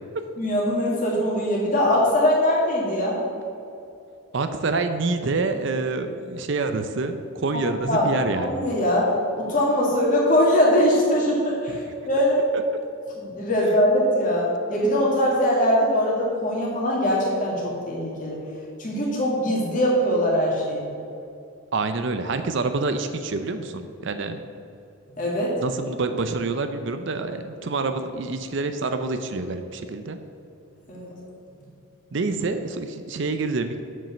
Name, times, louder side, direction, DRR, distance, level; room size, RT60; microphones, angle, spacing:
voice 1, 0.4-3.2 7.5-7.6 7.9-8.1 8.4-12.4 13.2-18.4 18.8-20.9 25.2-25.6 30.9-31.1, equal, 35° left, -4 dB, 2.2 m, -22 dB
voice 2, 4.3-8.6 21.7-24.4 25.5-30.2 32.1-33.7, right 3 dB, 55° right, 8 dB, 0.5 m, -27 dB
7.4 x 5.3 x 6.8 m, 2.6 s
head